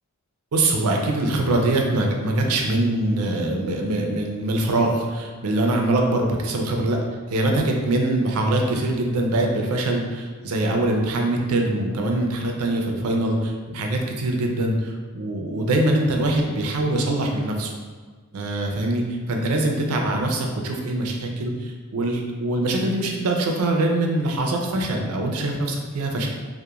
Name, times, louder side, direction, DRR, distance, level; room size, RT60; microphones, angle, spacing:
voice 1, 0.5-7.0 7.3-17.7 18.3-26.3, right 2 dB, 85° right, 1 dB, 0.4 m, -23 dB
2.8 x 2.1 x 2.3 m, 1.5 s
head